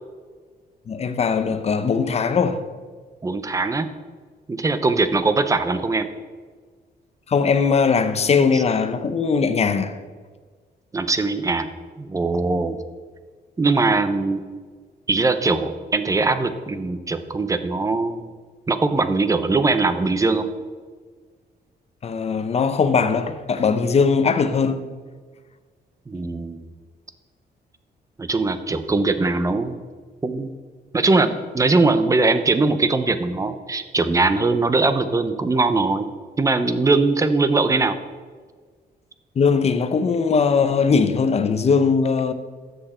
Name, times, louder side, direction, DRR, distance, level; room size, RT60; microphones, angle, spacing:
voice 1, 0.9-2.6 7.3-9.9 22.0-24.9 39.4-42.3, left 5 dB, 40° left, 0.7 m, -20 dB
voice 2, 3.2-3.9 4.5-6.1 10.9-11.7 12.0-12.8 13.6-14.4 15.1-18.3 18.7-20.5 26.1-26.7 28.2-29.8 30.2-30.5 30.9-36.1 36.4-38.0, right 3 dB, 20° right, 0.7 m, -21 dB
13.0 x 8.0 x 4.4 m
wide cardioid pair, 145°, 17 cm